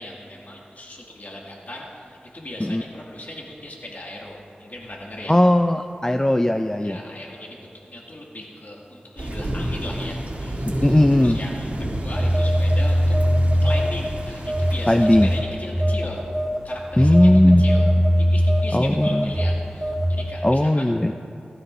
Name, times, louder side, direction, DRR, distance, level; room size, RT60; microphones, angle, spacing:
voice 1, 0.0-5.4 6.8-7.6 7.9-13.2 13.6-16.2 16.6-17.3 17.6-17.9 18.2-20.9, left 1 dB, 55° left, -3 dB, 2.3 m, -38 dB
voice 2, 5.3-7.0 10.7-11.4 14.9-15.3 17.0-17.6 18.7-19.3 20.4-21.2, left 1 dB, 15° left, 6 dB, 0.4 m, -18 dB
sound 1, 9.2-15.4, right 1 dB, 45° right, 2.9 m, -30 dB
Telephone, 12.1-14.1 14.5-20.3, equal, 10° right, 0.8 m, -21 dB
16.5 x 14.0 x 2.7 m, 2.7 s
cardioid pair, 40°, 3 cm